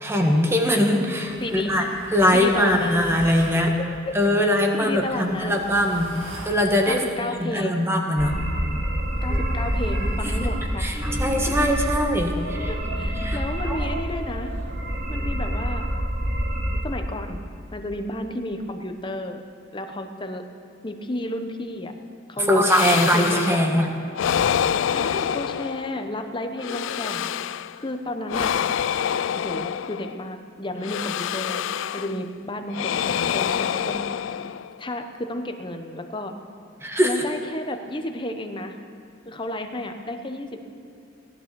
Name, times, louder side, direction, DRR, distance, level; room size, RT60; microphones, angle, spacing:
voice 1, 0.0-3.7 4.1-6.2 6.4-7.0 7.4-8.4 10.8-12.7 13.2-13.4 13.7-13.8 22.4-23.9 36.8-37.1, equal, 15° right, 2 dB, 1.5 m, -21 dB
sound 1, 1.3-3.6 4.6-6.6 8.3-10.6 11.3-14.7, right 1 dB, 85° right, 2.0 m, -41 dB
voice 2, 1.4-1.9 2.3-2.9 3.4-4.5 4.8-5.5 6.9-7.8 9.2-11.0 11.8-11.9 12.3-14.5 15.1-15.9 16.8-17.4 17.7-19.4 19.7-20.4 20.8-21.9 22.3-23.8 24.9-27.3 27.8-28.5 29.3-31.6 31.9-34.1 34.8-36.3 37.0-38.8 39.2-40.6, left 1 dB, 25° left, 6 dB, 1.0 m, -32 dB
sound 2, 8.2-12.0 12.3-14.2 14.5-16.8, equal, 50° right, 2.2 m, -27 dB
sound 3, 22.7-23.7 24.1-26.1 26.6-27.8 28.3-30.3 30.8-32.2 32.7-34.8, left 9 dB, 70° left, 0.3 m, -26 dB
17.0 x 11.5 x 6.9 m, 2.5 s
head